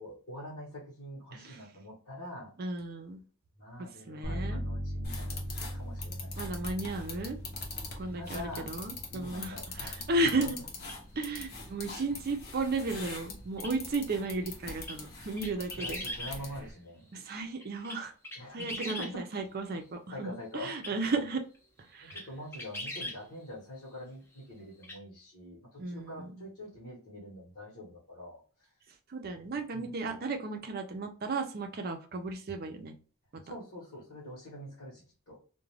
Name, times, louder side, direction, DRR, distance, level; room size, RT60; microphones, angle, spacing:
voice 1, 0.0-2.5 3.6-6.5 7.8-10.0 10.4-10.5 15.8-17.1 18.3-19.2 19.7-19.8 20.1-21.0 22.0-28.4 29.7-30.0 33.4-35.0 35.3-35.4, equal, 60° left, -6 dB, 1.0 m, -45 dB
voice 2, 2.6-3.2 4.1-4.6 6.4-7.4 8.0-10.6 11.2-16.0 17.1-18.1 18.5-21.4 21.9-22.2 25.8-26.3 29.1-32.9, right 3 dB, 45° right, 5 dB, 0.5 m, -34 dB
Bass guitar, 4.2-10.5, equal, 85° left, 0.8 m, -40 dB
sound 1, 5.0-16.7, left 3 dB, 45° left, 0.7 m, -43 dB
sound 2, 10.8-11.0 13.6-13.7 14.8-15.0 15.4-16.4 17.6-19.1 20.8-20.9 21.5-21.6 22.1-22.3 22.5-23.2 24.8-25.0, left 1 dB, 10° left, 0.5 m, -40 dB
2.4 x 2.2 x 3.2 m, 0.38 s
head